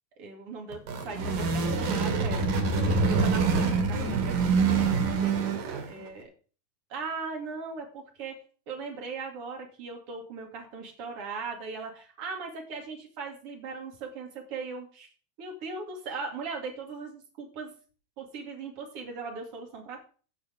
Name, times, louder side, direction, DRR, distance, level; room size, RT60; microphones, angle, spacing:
voice 1, 0.2-2.6 3.1-6.3 6.9-8.3 8.7-15.1 15.4-17.7 18.2-20.0, right 4 dB, 45° right, 2 dB, 3.2 m, -39 dB
sound 1, 0.7-6.0, right 4 dB, 70° right, 3.6 m, -26 dB
16.5 x 5.6 x 5.3 m, 0.40 s
omnidirectional pair, 4.2 m